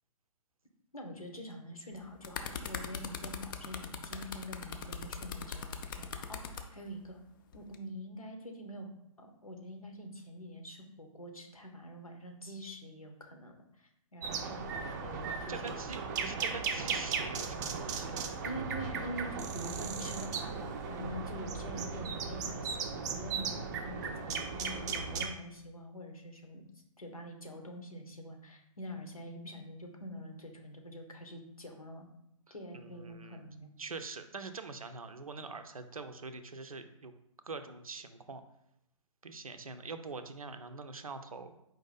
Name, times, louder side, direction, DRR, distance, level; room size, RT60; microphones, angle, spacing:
voice 1, 0.9-7.2 7.5-8.9 9.2-15.9 18.4-26.6 27.0-32.1 32.5-33.7, equal, 90° left, 3 dB, 0.9 m, -45 dB
sound 1, 1.9-6.6 7.5-7.7, left 7 dB, 40° left, 0.4 m, -40 dB
sound 2, 14.2-25.3, right 5 dB, 30° right, 0.4 m, -37 dB
voice 2, 15.5-18.2 32.5-33.5 33.8-37.1 37.5-38.4 39.2-41.6, right 4 dB, 85° right, 9 dB, 0.5 m, -44 dB
4.5 x 2.6 x 4.1 m, 0.79 s
figure-of-eight pair, 125°, 18 cm